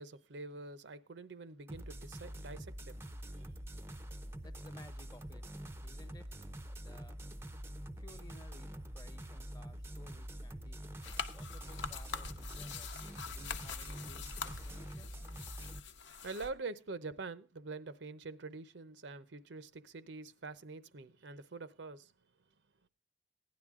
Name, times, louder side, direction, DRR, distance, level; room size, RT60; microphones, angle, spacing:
voice 1, 0.0-3.0 16.2-22.1, right 3 dB, 70° right, 0.7 m, -45 dB
sound 1, 1.7-15.8, equal, 15° right, 0.6 m, -46 dB
voice 2, 4.4-5.5 5.8-6.3 6.7-7.2 8.0-10.9 11.3-12.9 13.3-15.2, left 2 dB, 20° left, 1.1 m, -58 dB
sound 2, 11.0-16.5, left 5 dB, 70° left, 0.9 m, -44 dB
16.0 x 10.5 x 3.6 m
head